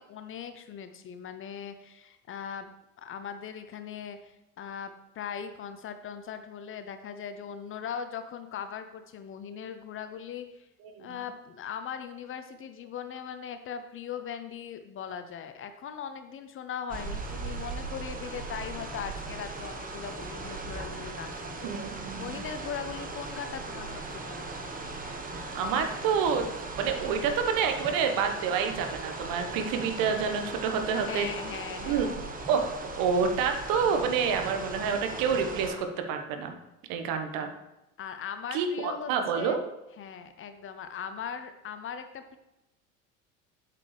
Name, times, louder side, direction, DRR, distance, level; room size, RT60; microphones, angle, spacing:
voice 1, 0.0-2.7 3.0-10.7 11.0-24.5 31.0-32.2 38.0-39.6 40.0-42.4, left 7 dB, 30° left, 9 dB, 0.6 m, -39 dB
sound 1, 16.9-35.7, right 3 dB, 20° right, 1.1 m, -38 dB
voice 2, 21.6-22.4 25.5-31.3 31.8-32.1 32.5-36.5 36.9-37.5 38.5-39.6, right 6 dB, 50° right, 6 dB, 1.2 m, -28 dB
8.4 x 7.5 x 3.3 m, 0.95 s
figure-of-eight pair, 70°, 43 cm